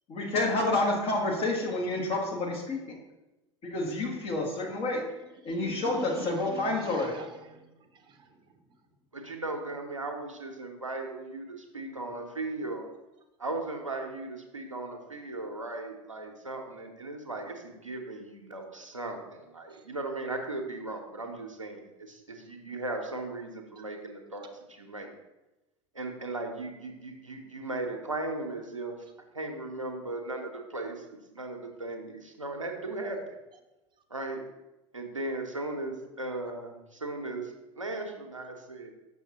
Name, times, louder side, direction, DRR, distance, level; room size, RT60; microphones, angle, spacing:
voice 1, 0.1-3.0 3.6-5.1 5.5-7.1, left 2 dB, 35° left, -2 dB, 1.7 m, -29 dB
voice 2, 4.0-4.4 5.3-8.4 19.7-19.9 23.8-23.9, right 2 dB, 30° right, 6 dB, 0.8 m, -46 dB
voice 3, 9.1-12.9 13.4-25.1 25.9-29.0 29.3-33.3 34.1-34.4 34.9-38.9, right 2 dB, 85° right, 3 dB, 0.9 m, -37 dB
6.3 x 6.2 x 2.9 m, 1.0 s
figure-of-eight pair, 80°, 16 cm